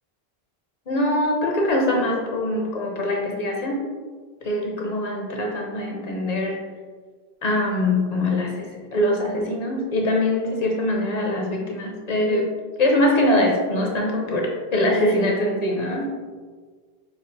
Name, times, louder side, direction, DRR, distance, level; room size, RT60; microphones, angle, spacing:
voice 1, 0.9-3.9 4.4-6.6 7.4-12.5 12.8-16.1, left 1 dB, 50° left, -1 dB, 0.6 m, -23 dB
5.3 x 2.4 x 2.6 m, 1.5 s
omnidirectional pair, 1.0 m